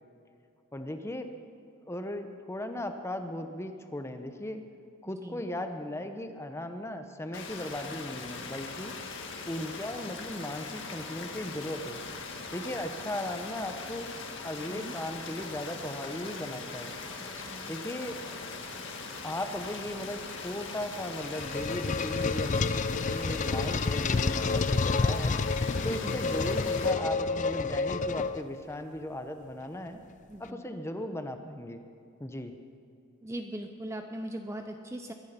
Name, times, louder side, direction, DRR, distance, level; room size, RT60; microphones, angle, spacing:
voice 1, 0.7-1.3 1.9-4.6 5.0-9.0 9.5-12.0 12.5-14.1 14.4-16.9 17.7-18.2 19.2-25.4 25.8-30.0 30.4-31.8 32.2-32.5, left 1 dB, 10° left, 7 dB, 0.9 m, -37 dB
sound 1, 7.3-26.9, left 4 dB, 55° left, 1.8 m, -41 dB
voice 2, 17.4-17.7 25.9-26.2 30.3-30.6 33.2-35.1, right 1 dB, 15° right, 5 dB, 0.6 m, -40 dB
sound 2, 21.0-28.7, left 4 dB, 35° left, 0.4 m, -29 dB
22.5 x 10.5 x 5.8 m, 2.5 s
head